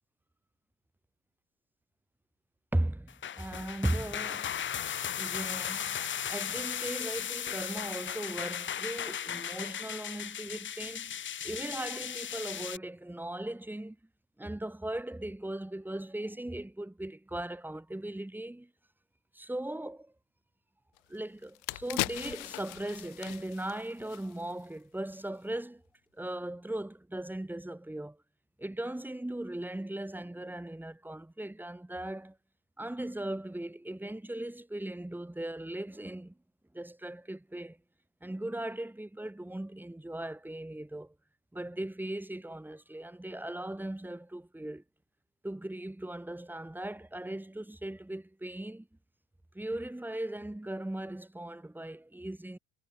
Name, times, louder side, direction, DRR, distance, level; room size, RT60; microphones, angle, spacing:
voice 1, 2.7-4.5 5.2-6.0 6.3-11.2 11.4-14.0 14.4-18.7 19.3-20.1 21.1-25.8 26.1-28.2 28.6-32.4 32.8-36.4 36.7-37.8 38.2-41.1 41.5-44.8 45.4-48.9 49.5-52.6, right 1 dB, 5° right, 4.7 m, -38 dB
sound 1, 3.1-12.8, left 9 dB, 35° left, 1.2 m, -36 dB
sound 2, 21.0-21.1 21.4-24.7 25.0-25.2, left 40 dB or more, 90° left, 3.0 m, -38 dB
cardioid pair, 115°, 35 cm